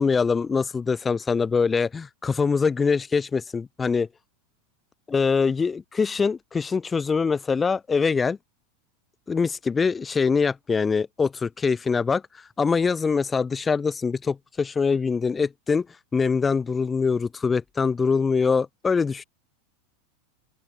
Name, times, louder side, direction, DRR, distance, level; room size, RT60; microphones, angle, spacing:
voice 1, 0.0-4.1 5.1-8.4 9.3-12.2 12.6-15.9 16.1-19.2, left 5 dB, 15° left, 2.8 m, -23 dB
open air
figure-of-eight pair, 85°, 0 cm